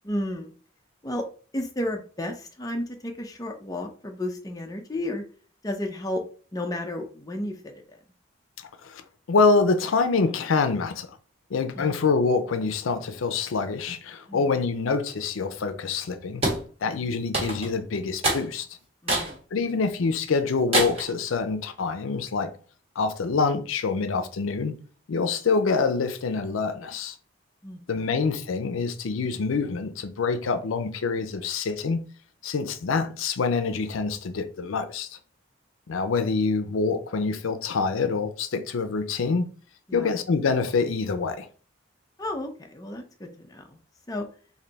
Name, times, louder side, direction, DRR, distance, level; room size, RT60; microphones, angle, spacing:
voice 1, 0.0-0.5 1.0-1.2 1.5-5.2 5.6-6.2 6.5-8.0 11.8-12.0 14.3-14.5 16.8-17.1 19.0-19.4 27.6-28.1 39.9-40.1 42.2-43.8 44.1-44.3, left 1 dB, 15° left, 0.5 m, -33 dB
voice 2, 9.3-11.2 11.5-16.4 16.8-18.7 19.5-22.5 23.0-24.7 25.1-27.2 27.9-32.0 32.4-35.2 35.9-39.5 39.9-41.5, left 4 dB, 80° left, 0.5 m, -26 dB
sound 1, 16.4-16.6 17.3-17.8 18.2-18.5 19.1-19.3 19.8-19.9 20.7-21.1, right 1 dB, 30° right, 1.1 m, -25 dB
3.3 x 2.6 x 3.9 m
head